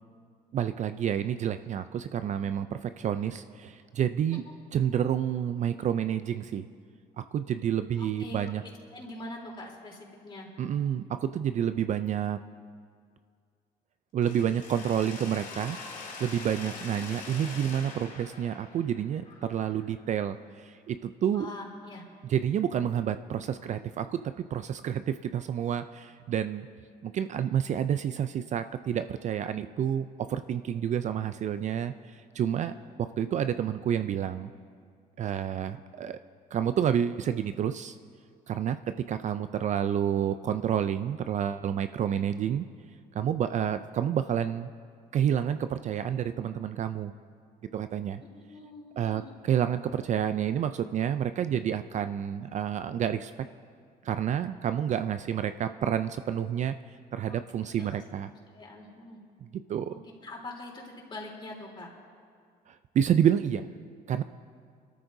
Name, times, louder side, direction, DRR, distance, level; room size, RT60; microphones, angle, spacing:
voice 1, 0.5-4.4 4.7-6.7 7.2-8.6 10.6-12.4 14.1-15.8 16.2-21.5 22.2-26.7 27.0-32.7 33.0-34.5 35.2-36.2 36.5-38.0 38.5-42.6 43.1-44.7 45.1-47.1 47.7-48.2 49.0-53.3 54.0-56.7 57.1-58.3 59.5-60.0 62.7-63.7 64.1-64.2, right 9 dB, 45° right, 10 dB, 0.4 m, -29 dB
voice 2, 8.0-8.4 8.9-10.0 10.2-10.5 16.9-17.1 21.3-22.0 32.5-32.7 48.3-49.3 57.2-57.4 57.8-57.9 58.5-59.2 60.2-61.9, left 2 dB, 30° left, -2 dB, 3.4 m, -43 dB
Mechanisms, 14.2-20.1, left 4 dB, 50° left, 2.3 m, -44 dB
26.5 x 13.5 x 2.7 m, 2.1 s
cardioid pair, 110°, 17 cm